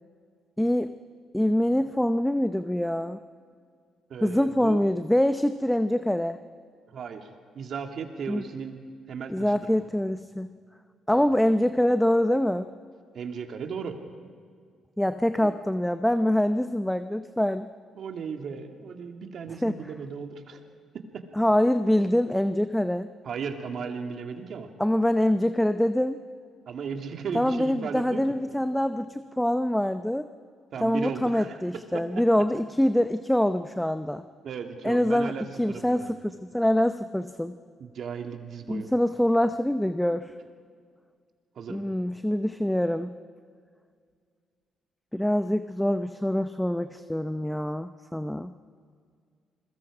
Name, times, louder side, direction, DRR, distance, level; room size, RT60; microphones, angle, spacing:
voice 1, 0.6-0.9 1.3-3.2 4.2-6.4 8.3-8.4 9.3-10.5 11.1-12.7 15.0-17.7 19.6-19.8 21.4-23.1 24.8-26.2 27.3-30.3 30.8-34.2 34.8-35.3 35.6-37.5 38.7-40.3 41.7-43.1 45.1-48.5, left 1 dB, 5° left, 10 dB, 0.6 m, -25 dB
voice 2, 4.1-4.8 6.9-7.3 7.5-8.8 9.1-9.8 11.1-11.2 13.1-14.0 15.4-15.5 18.0-20.6 20.9-21.2 23.2-24.7 26.7-28.3 30.7-32.0 34.4-36.1 37.8-38.9 41.6-41.8, right 6 dB, 60° right, 4 dB, 2.1 m, -36 dB
28.5 x 21.5 x 4.9 m, 2.1 s
cardioid pair, 90°, 0 cm